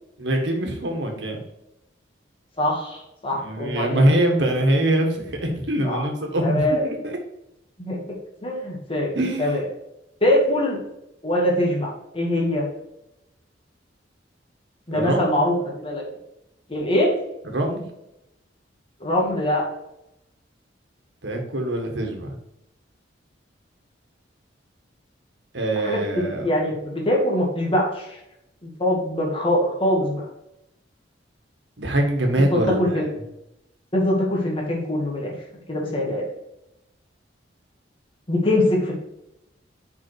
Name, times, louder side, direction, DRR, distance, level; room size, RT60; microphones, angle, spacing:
voice 1, 0.2-1.4 3.4-7.2 9.1-9.6 14.9-15.2 17.4-17.8 21.2-22.4 25.5-26.5 31.8-33.1, right 1 dB, 65° right, 2 dB, 1.6 m, -23 dB
voice 2, 2.6-4.0 5.8-6.0 6.4-6.9 7.8-8.0 8.4-9.1 9.4-9.6 10.2-10.8 11.2-12.7 14.9-16.0 16.7-17.1 19.0-19.7 25.7-28.2 28.6-30.2 32.5-33.1 33.9-35.3 35.7-36.3 38.3-38.9, left 1 dB, 30° left, -2 dB, 2.0 m, -23 dB
5.4 x 5.1 x 4.7 m, 0.85 s
head